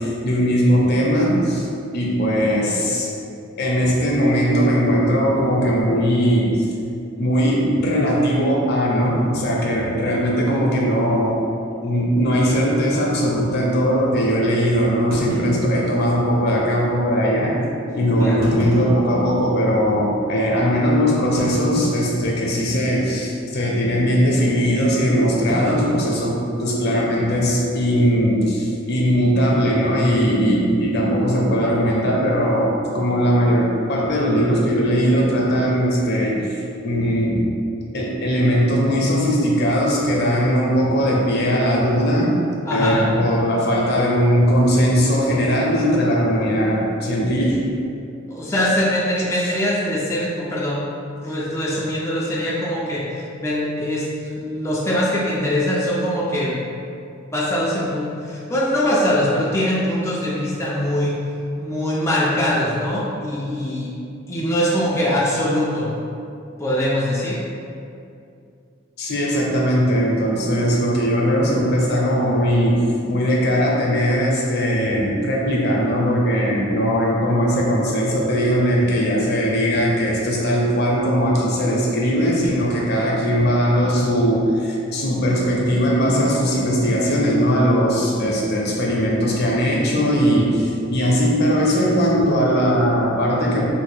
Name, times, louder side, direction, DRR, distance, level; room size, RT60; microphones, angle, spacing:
voice 1, 0.0-1.7 1.9-3.1 3.6-6.7 7.2-11.4 11.8-17.6 17.9-37.5 37.9-42.4 42.7-47.6 49.3-49.5 69.0-72.8 73.1-93.7, equal, 55° left, -3 dB, 0.6 m, -19 dB
sound 1, 11.3-11.4 11.7-11.8 12.4-12.5 15.1-16.3 17.1-17.2 18.3-19.7 20.2-20.3 21.4-22.5 22.7-23.1 23.3-23.7 25.5-27.1, equal, 70° right, 1.0 m, -31 dB
voice 2, 18.2-18.5 42.7-43.1 48.3-50.8 51.2-56.6 57.3-61.2 61.6-63.9 64.3-65.9 66.6-67.4 82.7-82.9, left 1 dB, 15° left, -6 dB, 0.3 m, -22 dB
3.3 x 2.5 x 3.2 m, 2.5 s
head